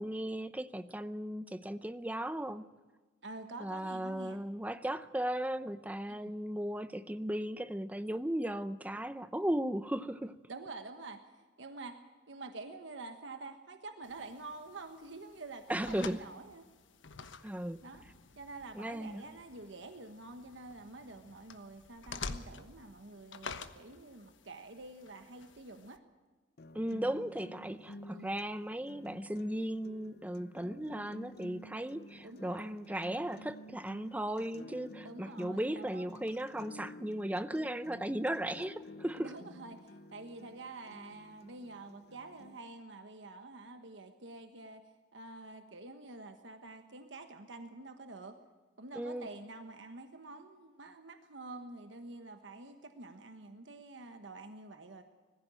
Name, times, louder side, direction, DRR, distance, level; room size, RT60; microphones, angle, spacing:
voice 1, 0.0-2.7 3.6-10.4 15.7-16.2 17.4-17.8 18.8-19.2 26.7-39.3 49.0-49.3, right 1 dB, 10° right, 0.5 m, -36 dB
voice 2, 3.2-4.4 6.1-6.3 10.5-11.2 11.6-12.0 12.3-16.7 17.8-18.0 18.3-26.0 28.1-28.4 32.2-32.8 35.0-36.1 39.2-44.8 45.1-48.4 48.8-55.0, right 2 dB, 75° right, 1.3 m, -48 dB
sound 1, 14.0-26.0, left 4 dB, 80° left, 1.2 m, -49 dB
sound 2, 26.6-42.6, left 1 dB, 55° left, 0.6 m, -52 dB
21.0 x 15.0 x 9.0 m
head